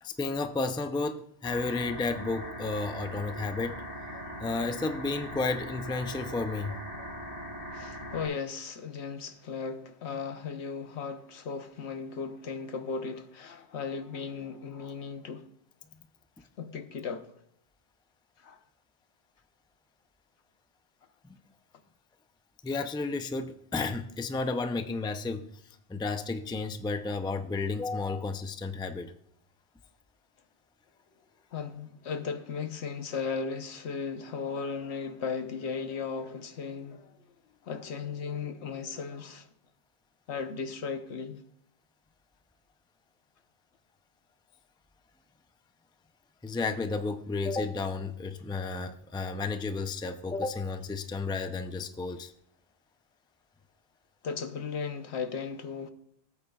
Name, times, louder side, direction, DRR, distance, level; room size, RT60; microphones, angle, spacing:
voice 1, 0.0-3.8 4.4-6.7 21.2-21.4 22.6-29.1 46.4-52.3, left 3 dB, 5° left, 0.3 m, -32 dB
sound 1, 1.4-8.3, equal, 55° left, 4.2 m, -40 dB
voice 2, 7.7-15.5 16.6-17.3 18.4-18.6 31.5-37.1 37.6-39.5 40.3-41.4 54.2-55.9, left 5 dB, 85° left, 1.2 m, -36 dB
17.5 x 8.5 x 2.4 m
omnidirectional pair, 1.1 m